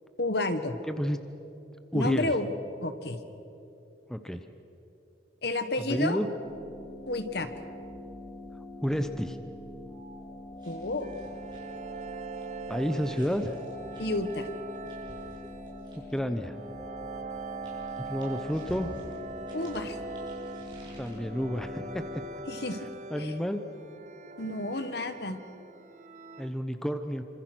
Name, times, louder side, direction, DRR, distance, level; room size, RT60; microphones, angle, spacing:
voice 1, 0.2-0.8 1.9-2.5 2.8-3.2 5.4-6.2 7.1-7.5 10.6-11.1 14.0-14.5 19.5-20.0 22.5-22.9 23.2-23.3 24.4-25.4, left 2 dB, 60° left, 9 dB, 1.5 m, -30 dB
voice 2, 0.8-1.2 1.9-2.3 4.1-4.5 5.9-6.3 8.8-9.4 12.7-13.5 15.9-16.6 18.0-18.9 21.0-22.0 23.1-23.6 26.4-27.2, equal, 5° left, 8 dB, 0.8 m, -30 dB
sound 1, 6.4-22.3, left 2 dB, 30° left, 2.3 m, -44 dB
sound 2, 10.5-16.3 17.2-21.2, right 1 dB, 25° right, 7.1 m, -52 dB
sound 3, 11.0-26.5, right 4 dB, 40° right, 0.8 m, -42 dB
27.5 x 25.5 x 6.2 m, 2.9 s
head